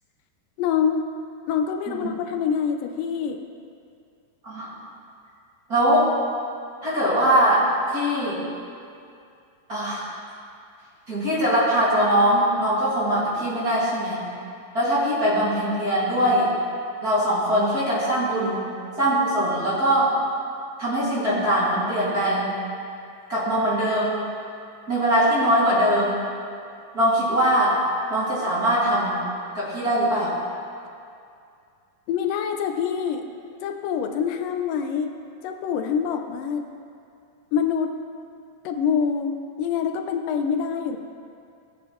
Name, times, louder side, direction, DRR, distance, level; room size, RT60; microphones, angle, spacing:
voice 1, 0.6-1.0 1.5-3.4 32.1-33.2 33.6-35.1 35.4-36.6 37.5-37.9 38.6-41.0, left 7 dB, 80° left, 5 dB, 2.3 m, -25 dB
voice 2, 5.7-6.1 6.8-7.6 7.9-8.4 9.7-10.1 11.1-14.3 14.7-16.5 17.0-18.7 19.0-20.1 20.8-22.5 23.3-24.2 24.9-26.2 26.9-27.8 28.1-29.2 29.5-30.4, right 1 dB, 30° right, -8 dB, 2.3 m, -21 dB
18.5 x 8.8 x 3.1 m, 2.4 s
omnidirectional pair, 3.9 m